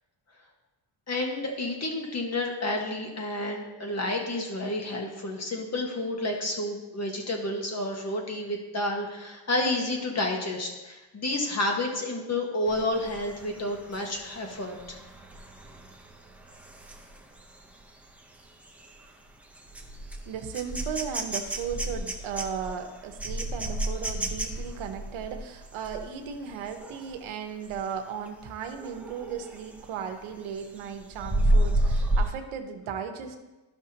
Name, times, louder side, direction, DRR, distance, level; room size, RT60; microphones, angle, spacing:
voice 1, 1.1-15.0, left 1 dB, 35° left, 1 dB, 1.5 m, -30 dB
sound 1, 12.7-27.2 27.6-27.9 28.3-29.9 30.3-32.3, right 1 dB, 5° right, 0.7 m, -32 dB
voice 2, 20.2-33.4, right 7 dB, 85° right, 6 dB, 1.0 m, -36 dB
12.5 x 5.9 x 2.8 m, 1.1 s
cardioid pair, 105°, 46 cm